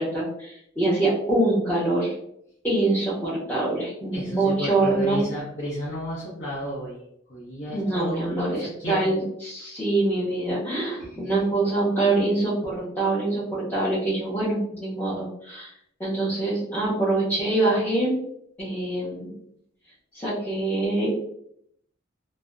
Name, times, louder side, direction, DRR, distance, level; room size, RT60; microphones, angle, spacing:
voice 1, 0.0-2.1 2.6-5.2 7.7-15.7 16.0-18.2 18.6-19.3 20.1-21.1, right 2 dB, 10° left, -11 dB, 0.5 m, -25 dB
voice 2, 4.1-7.0 7.3-8.9 11.0-11.2, equal, 65° left, -8 dB, 0.7 m, -33 dB
2.7 x 2.0 x 2.3 m, 0.72 s
head